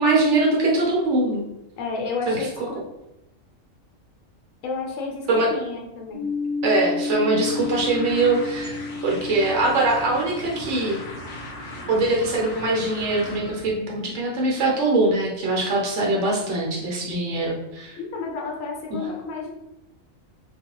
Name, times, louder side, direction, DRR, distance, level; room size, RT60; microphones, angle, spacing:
voice 1, 0.0-1.4 2.3-2.4 5.3-5.5 6.6-8.7 9.0-11.0 11.9-17.9 18.9-19.0, right 2 dB, 65° right, -2 dB, 1.0 m, -22 dB
voice 2, 1.8-2.8 4.6-6.2 18.0-19.5, left 4 dB, 75° left, 0 dB, 1.0 m, -31 dB
sound 1, 6.1-11.6, left 3 dB, 15° left, 0.6 m, -31 dB
sound 2, 7.4-13.7, left 1 dB, 50° left, 0.7 m, -38 dB
2.4 x 2.2 x 2.9 m, 0.87 s
omnidirectional pair, 1.4 m